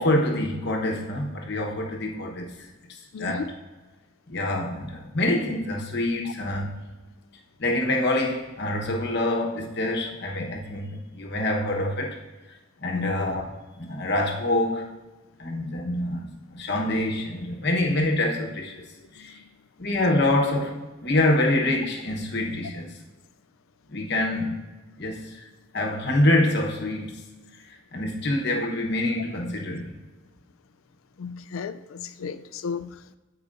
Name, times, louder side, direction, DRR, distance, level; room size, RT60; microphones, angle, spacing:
voice 1, 0.0-2.5 2.9-3.5 4.3-6.8 7.6-12.2 12.8-13.5 13.7-14.9 15.4-18.8 19.1-19.4 19.8-22.9 23.9-24.6 25.0-25.4 25.7-27.2 27.9-29.9, left 1 dB, 55° left, 1.1 m, -26 dB
voice 2, 3.1-3.5 12.9-13.1 19.2-19.3 31.2-33.2, left 5 dB, 85° left, 0.4 m, -33 dB
14.5 x 4.9 x 2.6 m
head